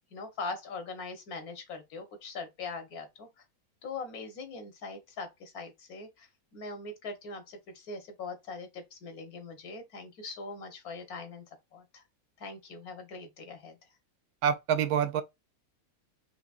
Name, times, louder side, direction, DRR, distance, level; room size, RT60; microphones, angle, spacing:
voice 1, 0.1-3.3 3.8-11.4 11.7-12.0 12.4-13.8, left 3 dB, 85° left, 1.6 m, -41 dB
voice 2, 14.4-15.2, right 8 dB, 90° right, 1.2 m, -26 dB
4.9 x 3.3 x 2.4 m
omnidirectional pair, 1.5 m